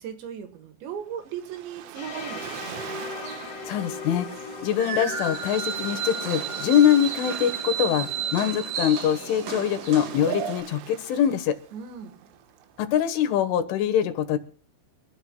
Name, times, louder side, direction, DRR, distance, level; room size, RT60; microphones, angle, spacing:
voice 1, 0.0-2.8 11.7-12.3, right 8 dB, 70° right, 8 dB, 3.5 m, -37 dB
Waves surf, 0.9-13.3, right 11 dB, 90° right, 3.7 m, -44 dB
sound 1, 1.9-9.8, left 4 dB, 65° left, 1.5 m, -41 dB
sound 2, 2.1-10.6, right 7 dB, 55° right, 2.8 m, -33 dB
voice 2, 3.7-11.6 12.8-14.4, left 9 dB, 80° left, 9 dB, 3.7 m, -23 dB
29.0 x 13.5 x 2.3 m, 0.42 s
omnidirectional pair, 5.5 m